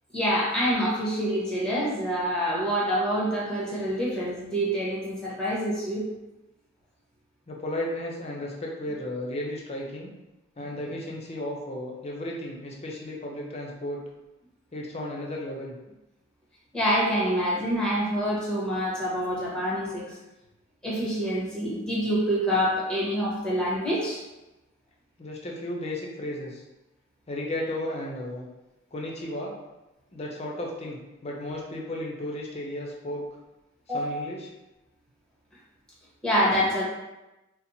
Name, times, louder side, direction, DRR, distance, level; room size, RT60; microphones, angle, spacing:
voice 1, 0.1-6.1 16.7-20.2 20.8-24.2 33.9-34.2 36.2-36.8, equal, 5° left, -6 dB, 1.0 m, -26 dB
voice 2, 7.5-10.1 10.6-14.0 14.7-15.7 25.2-26.6 27.3-28.5 28.9-29.5 30.1-33.2 33.9-34.5, left 1 dB, 35° left, -1 dB, 0.6 m, -34 dB
4.2 x 2.0 x 2.7 m, 0.99 s
head